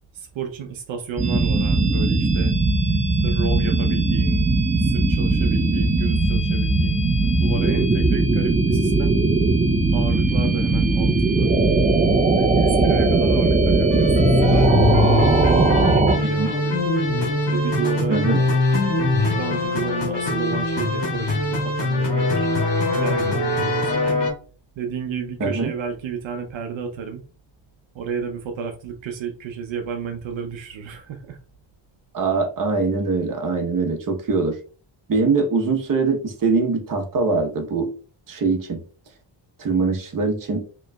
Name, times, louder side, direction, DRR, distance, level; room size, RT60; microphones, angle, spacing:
voice 1, 0.1-2.6 3.2-4.5 4.8-9.1 9.9-11.5 12.4-16.8 17.5-18.2 19.3-22.5 22.9-24.3 24.8-27.2 27.9-31.4, right 6 dB, 75° right, 5 dB, 0.7 m, -32 dB
sound 1, 1.2-16.2, right 3 dB, 15° right, 0.5 m, -19 dB
sound 2, 13.9-24.3, left 2 dB, 60° left, 1.6 m, -22 dB
voice 2, 16.2-16.5 18.1-18.4 25.4-25.7 32.1-34.6 35.1-37.9 38.3-38.8 39.6-40.6, right 4 dB, 45° right, 3 dB, 0.9 m, -22 dB
5.0 x 3.1 x 2.2 m, 0.37 s
wide cardioid pair, 145°, 47 cm